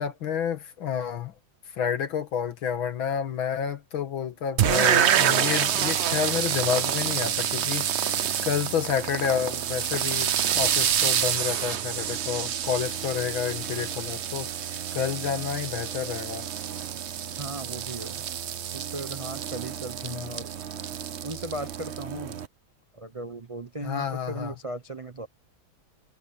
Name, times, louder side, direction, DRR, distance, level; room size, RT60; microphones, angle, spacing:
voice 1, 0.0-1.3 1.8-16.5 20.0-20.4 23.8-24.5, left 8 dB, 75° left, 2.5 m, -30 dB
sound 1, 4.6-22.5, right 9 dB, 90° right, 0.5 m, -28 dB
voice 2, 17.4-18.3 18.7-20.5 21.2-22.4 22.9-25.3, right 2 dB, 35° right, 0.5 m, -37 dB
omnidirectional pair, 2.2 m